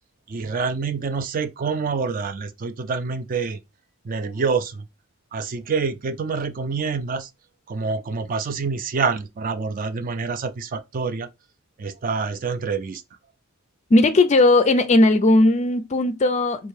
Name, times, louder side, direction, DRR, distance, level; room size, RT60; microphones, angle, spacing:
voice 1, 0.3-3.6 4.0-4.8 5.3-7.3 7.7-11.3 11.8-13.0, right 5 dB, 40° right, 0.3 m, -26 dB
voice 2, 13.9-16.7, left 2 dB, 30° left, 0.4 m, -17 dB
4.5 x 2.5 x 3.2 m
head